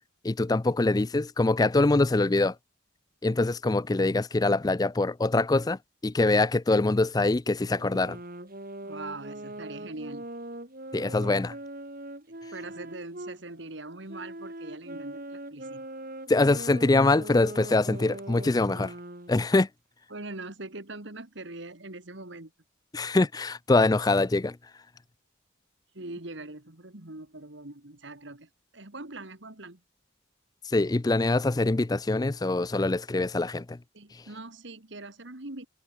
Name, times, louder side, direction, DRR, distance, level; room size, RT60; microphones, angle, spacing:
voice 1, 0.2-2.6 3.2-8.2 10.9-11.6 16.3-18.9 19.3-19.7 22.9-24.6 30.7-33.8 34.1-34.2, left 2 dB, 20° left, 0.4 m, -24 dB
sound 1, 7.7-13.4 14.1-19.5, right 1 dB, 45° right, 3.4 m, -41 dB
voice 2, 8.8-10.3 12.5-15.9 20.1-22.5 25.9-29.8 33.9-35.7, right 2 dB, 60° right, 2.2 m, -42 dB
head